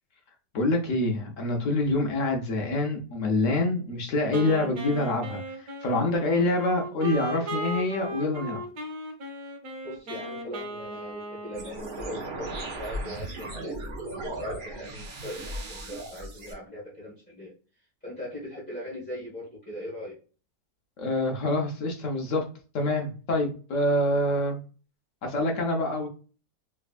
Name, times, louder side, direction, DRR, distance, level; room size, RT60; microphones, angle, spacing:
voice 1, 0.5-8.6 21.0-22.4 22.7-24.6 25.2-26.1, left 2 dB, 60° left, 2 dB, 0.9 m, -26 dB
Wind instrument woodwind instrument, 4.3-12.2, equal, 70° right, 1.3 m, -37 dB
voice 2, 9.8-17.5 18.0-20.1 24.0-24.2 25.3-25.5, left 1 dB, 5° left, -9 dB, 1.2 m, -40 dB
sound 1, 11.5-16.5, right 1 dB, 50° right, 0.6 m, -37 dB
3.3 x 3.1 x 2.4 m, 0.36 s
omnidirectional pair, 1.8 m